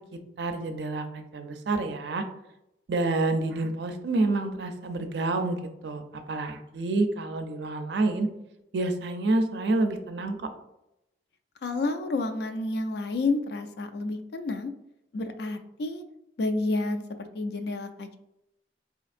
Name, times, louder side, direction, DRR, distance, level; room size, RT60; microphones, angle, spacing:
voice 1, 0.4-2.2 2.9-5.6 5.8-6.0 6.3-8.3 8.7-10.5, right 2 dB, 70° right, 7 dB, 0.4 m, -28 dB
voice 2, 11.6-14.7 15.1-16.0 16.4-18.2, left 2 dB, 65° left, 7 dB, 0.4 m, -30 dB
4.2 x 2.8 x 2.4 m, 0.87 s
head